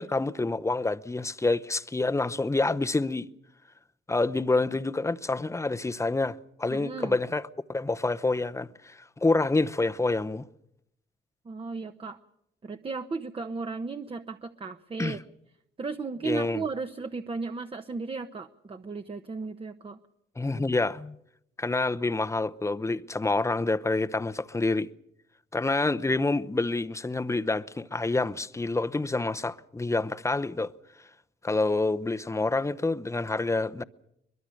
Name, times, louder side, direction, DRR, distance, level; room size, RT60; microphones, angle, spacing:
voice 1, 0.0-3.3 4.1-10.5 15.0-15.2 16.2-16.6 20.4-21.2 21.6-24.9 25.5-30.7 31.4-33.8, left 2 dB, 15° left, 0.8 m, -27 dB
voice 2, 6.7-7.2 11.4-12.2 12.6-15.2 15.8-20.0 20.5-20.7, right 4 dB, 30° right, 1.0 m, -35 dB
23.0 x 21.5 x 6.5 m
cardioid pair, 90°, 20 cm